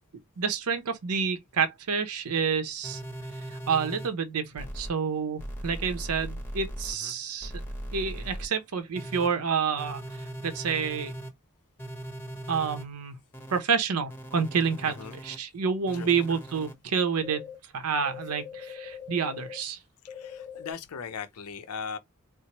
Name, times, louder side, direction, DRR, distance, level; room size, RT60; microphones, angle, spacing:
voice 1, 0.4-3.0 3.5-7.5 7.9-11.1 12.5-13.2 13.5-14.9 15.2-19.8, right 6 dB, 85° right, 0.7 m, -29 dB
sound 1, 2.8-4.1 4.6-4.9 5.4-6.9 7.4-8.5 8.9-9.3 9.8-11.3 11.8-12.8 13.3-13.6 14.1-15.4 15.9-16.7 17.2-17.5 18.0-19.6 20.1-20.7, equal, 10° left, 1.0 m, -39 dB
voice 2, 14.8-15.2 15.9-16.4 20.0-22.0, left 6 dB, 80° left, 0.5 m, -39 dB
4.4 x 2.0 x 2.9 m
head